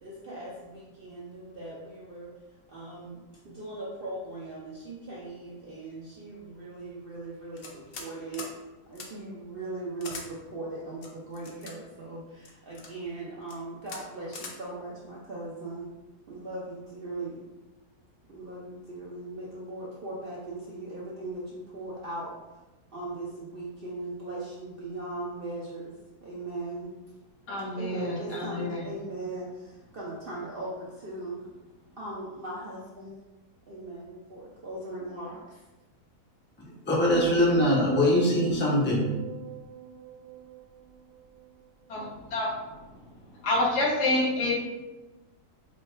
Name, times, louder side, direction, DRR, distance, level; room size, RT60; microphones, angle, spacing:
voice 1, 0.0-2.3 2.7-8.5 8.9-15.9 16.3-17.4 18.3-22.3 22.9-25.9 26.2-26.9 27.7-31.5 32.0-33.2 33.7-35.6, right 2 dB, 55° right, -5 dB, 0.6 m, -39 dB
sound 1, 7.6-8.1 8.3-8.5 8.9-9.1 10.0-10.3 11.0-11.7 12.4-12.9 13.4-13.6 13.9-14.0 14.3-14.5, left 4 dB, 60° left, 0.6 m, -41 dB
voice 2, 27.5-28.9 41.9-42.6 43.4-44.5, left 2 dB, 90° left, -2 dB, 1.5 m, -28 dB
voice 3, 36.9-39.1, left 1 dB, 10° left, -4 dB, 0.5 m, -22 dB
sound 2, 37.1-41.5 41.8-42.2, right 8 dB, 80° right, 1.2 m, -39 dB
5.1 x 2.2 x 3.2 m, 1.1 s
omnidirectional pair, 1.7 m